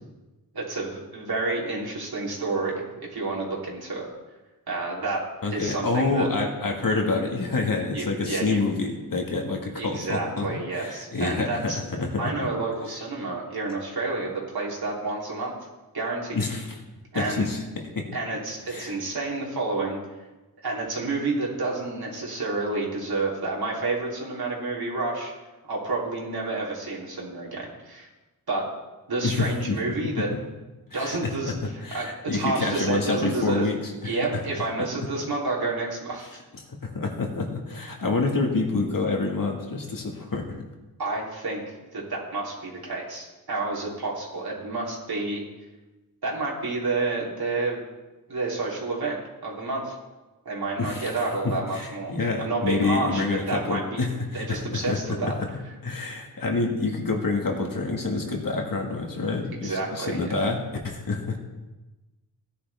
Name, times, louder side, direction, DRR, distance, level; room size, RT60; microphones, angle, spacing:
voice 1, 0.5-4.1 4.7-5.3 5.5-6.3 7.9-8.6 9.8-11.8 12.2-15.5 15.9-16.5 17.1-17.5 18.1-20.0 20.6-25.3 25.6-28.1 28.5-28.7 29.1-30.3 30.9-33.7 34.0-36.4 41.0-41.6 41.9-45.4 46.2-47.8 48.3-50.0 50.5-52.1 52.4-54.1 54.3-55.3 59.5-60.3, right 3 dB, 70° right, -4 dB, 3.5 m, -29 dB
voice 2, 5.4-10.5 10.7-12.3 16.3-16.8 17.1-18.1 18.7-18.9 29.2-29.8 30.2-30.3 30.9-34.1 36.7-40.7 50.8-51.1 51.4-55.3 55.8-61.4, left 3 dB, 60° left, 1 dB, 1.9 m, -27 dB
16.5 x 10.5 x 3.5 m, 1.1 s
wide cardioid pair, 85°, 39 cm